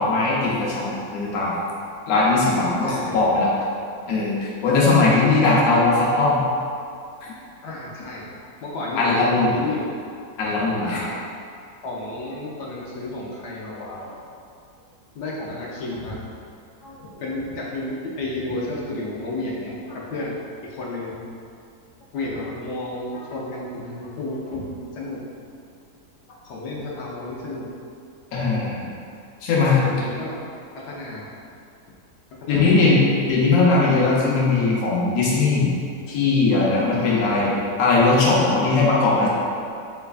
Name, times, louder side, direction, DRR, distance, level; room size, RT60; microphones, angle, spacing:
voice 1, 0.0-1.5 2.1-3.5 4.1-6.4 9.0-9.5 10.4-11.0 28.3-28.9 29.4-29.8 32.5-33.0 33.3-35.7 36.1-37.5 37.8-39.3, left 3 dB, 70° left, -6 dB, 1.1 m, -19 dB
voice 2, 2.8-3.3 3.7-3.9 7.6-9.9 10.8-11.2 11.8-14.1 15.1-16.2 16.8-21.2 22.1-25.2 26.3-27.7 29.7-30.4 30.7-31.3 32.4-33.1 36.9-37.6, left 2 dB, 90° left, -5 dB, 1.2 m, -32 dB
3.3 x 3.2 x 2.3 m, 2.4 s
omnidirectional pair, 1.7 m